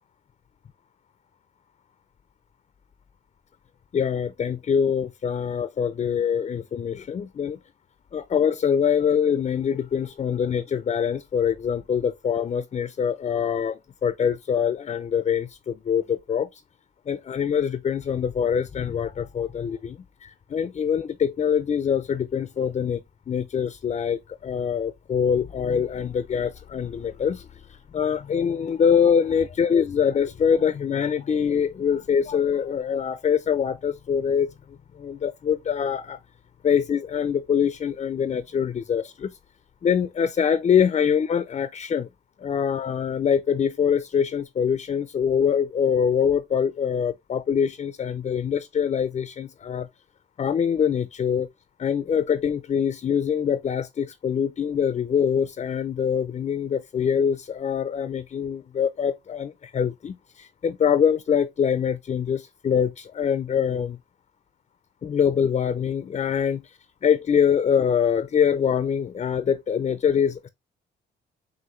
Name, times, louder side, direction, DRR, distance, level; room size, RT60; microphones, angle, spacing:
voice 1, 3.9-7.6 8.1-16.6 17.1-36.2 36.6-39.4 39.8-42.1 42.4-49.9 50.4-51.5 51.8-64.0 65.0-70.5, left 7 dB, 35° left, 0.4 m, -24 dB
6.2 x 2.6 x 3.0 m
cardioid pair, 90°, 20 cm